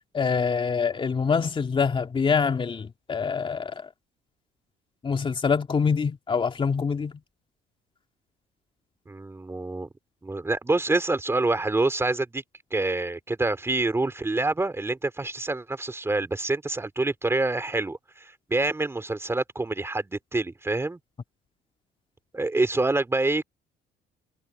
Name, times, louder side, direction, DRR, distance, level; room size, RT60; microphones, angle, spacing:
voice 1, 0.1-3.7 5.0-7.1, left 5 dB, 30° left, 2.7 m, -25 dB
voice 2, 9.1-9.9 10.2-12.4 12.7-21.0 22.3-23.4, right 2 dB, 15° right, 3.0 m, -26 dB
cardioid pair, 110°, 17 cm